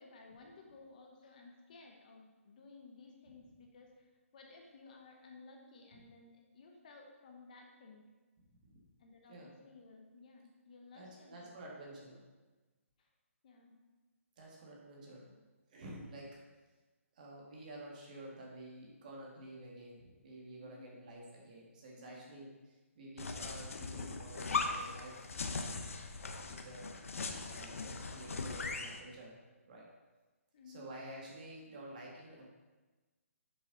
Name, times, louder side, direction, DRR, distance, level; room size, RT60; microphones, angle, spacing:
voice 1, 0.0-4.1 4.3-8.1 9.0-11.7 12.0-12.2 13.0-13.1 13.4-13.8 20.6-21.0 22.0-22.3 30.5-30.9, left 3 dB, 35° left, 1 dB, 0.9 m, -57 dB
voice 2, 10.9-12.2 14.4-15.4 15.7-16.4 17.2-22.5 23.0-25.2 25.4-25.9 26.5-26.9 27.5-29.4 29.7-29.9 30.7-32.5, right 1 dB, 35° right, -3 dB, 1.8 m, -50 dB
sound 1, 23.2-29.0, left 4 dB, 70° left, 0.9 m, -39 dB
7.6 x 6.7 x 3.9 m, 1.2 s
hypercardioid pair, 170°, 8 cm